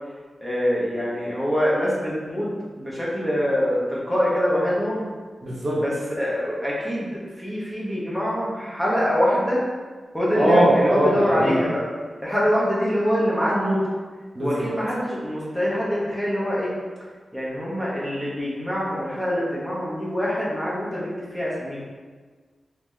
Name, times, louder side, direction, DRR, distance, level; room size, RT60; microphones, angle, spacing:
voice 1, 0.4-5.1 5.7-7.1 7.4-9.6 10.1-11.8 12.2-13.9 14.4-16.7 17.3-21.8, equal, 5° left, -7 dB, 0.7 m, -24 dB
voice 2, 5.4-5.8 10.3-11.6 14.3-14.7, right 1 dB, 40° right, -6 dB, 0.9 m, -20 dB
3.1 x 2.8 x 3.7 m, 1.4 s
wide cardioid pair, 155°, 0 cm